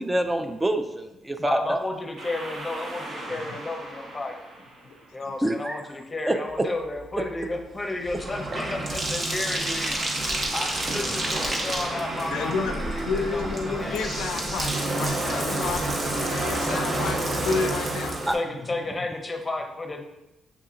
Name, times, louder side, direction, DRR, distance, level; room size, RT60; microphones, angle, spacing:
voice 1, 0.0-1.8 5.4-5.8 6.3-6.4 18.3-18.4, right 1 dB, 15° right, 7 dB, 0.3 m, -26 dB
voice 2, 1.4-4.3 5.1-14.0 18.3-20.0, left 2 dB, 20° left, 3 dB, 0.7 m, -33 dB
sound 1, 2.2-5.5 9.5-14.4, right 2 dB, 70° right, 1.1 m, -39 dB
Bathtub (filling or washing), 7.0-18.3, right 1 dB, 40° right, 0.9 m, -29 dB
voice 3, 12.3-18.3, left 4 dB, 85° left, 6 dB, 0.3 m, -31 dB
6.9 x 2.7 x 2.5 m, 0.92 s
cardioid pair, 90°, 0 cm